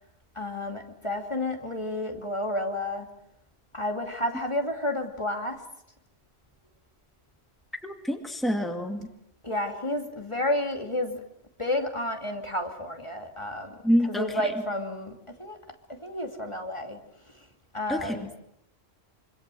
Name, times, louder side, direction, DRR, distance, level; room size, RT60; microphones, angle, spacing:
voice 1, 0.4-3.1 3.7-5.6 9.4-11.2 11.6-13.8 14.1-15.6 15.9-17.0 17.7-18.4, left 1 dB, 25° left, 4 dB, 2.8 m, -31 dB
voice 2, 7.8-9.1 13.8-14.5 17.9-18.2, equal, ahead, 5 dB, 2.4 m, -27 dB
26.0 x 25.5 x 7.7 m, 0.77 s
omnidirectional pair, 1.1 m